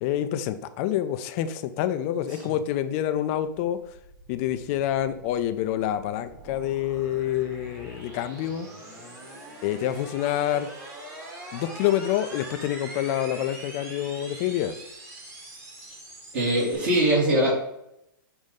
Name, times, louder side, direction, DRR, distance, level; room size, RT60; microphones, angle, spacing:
voice 1, 0.0-3.8 4.3-8.7 9.6-10.7 11.5-14.7, left 11 dB, 40° left, 11 dB, 0.5 m, -27 dB
sound 1, 3.1-16.8, right 1 dB, 25° right, 1.5 m, -43 dB
voice 2, 16.3-17.5, right 1 dB, 50° right, -6 dB, 2.2 m, -22 dB
6.8 x 2.6 x 5.2 m, 0.81 s
hypercardioid pair, 125°, 12 cm